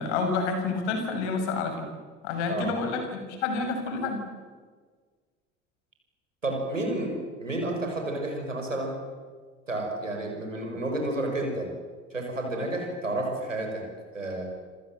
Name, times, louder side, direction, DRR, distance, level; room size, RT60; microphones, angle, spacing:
voice 1, 0.0-1.9 2.2-3.0 3.4-4.2, left 4 dB, 65° left, 6 dB, 6.5 m, -28 dB
voice 2, 6.4-7.1 7.4-9.0 9.7-11.7 12.1-13.8 14.1-14.4, right 2 dB, 90° right, 2 dB, 6.1 m, -30 dB
27.5 x 26.5 x 7.8 m, 1.5 s
figure-of-eight pair, 60°, 37 cm